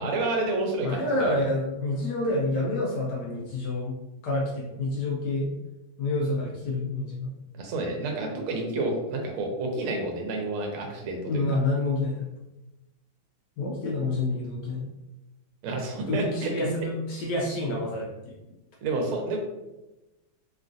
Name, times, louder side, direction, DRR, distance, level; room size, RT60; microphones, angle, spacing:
voice 1, 0.0-1.3 7.6-11.5 15.6-16.5 18.8-19.4, right 2 dB, 85° right, 2 dB, 1.5 m, -29 dB
voice 2, 0.8-3.9 4.2-5.5 6.0-7.3 11.3-12.3 13.6-14.8 16.1-18.3, left 2 dB, 70° left, -3 dB, 1.0 m, -28 dB
3.6 x 2.3 x 2.5 m, 1.0 s
omnidirectional pair, 2.2 m